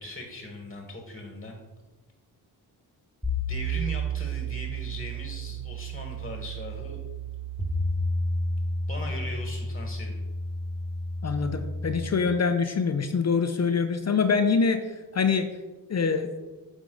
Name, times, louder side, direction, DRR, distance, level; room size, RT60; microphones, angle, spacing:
voice 1, 0.0-1.6 3.4-7.0 8.9-10.2, left 1 dB, 20° left, 2 dB, 1.4 m, -39 dB
sound 1, 3.2-12.0, right 1 dB, 5° right, 1.9 m, -31 dB
voice 2, 11.2-15.5 15.9-16.3, left 5 dB, 35° left, 8 dB, 0.6 m, -25 dB
8.8 x 3.6 x 3.9 m, 1.2 s
cardioid pair, 60°, 44 cm